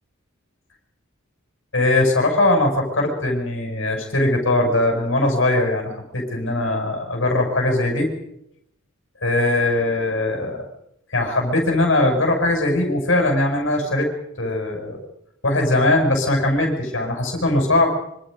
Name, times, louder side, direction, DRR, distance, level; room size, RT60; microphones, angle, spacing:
voice 1, 1.7-8.1 9.2-10.6 11.1-14.1 14.4-15.0 15.4-17.9, left 2 dB, 60° left, 2 dB, 6.6 m, -20 dB
26.0 x 25.5 x 5.2 m, 0.79 s
head